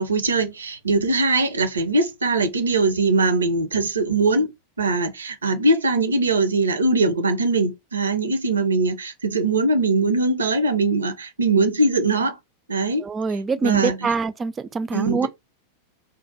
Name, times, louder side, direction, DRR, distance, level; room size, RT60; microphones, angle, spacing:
voice 1, 0.0-4.5 4.8-12.4 12.7-13.0 13.6-14.1 14.9-15.3, right 3 dB, 70° right, 0.5 m, -21 dB
voice 2, 13.0-15.3, right 4 dB, 20° right, 0.3 m, -24 dB
2.4 x 2.1 x 3.9 m
figure-of-eight pair, 90°, 0 cm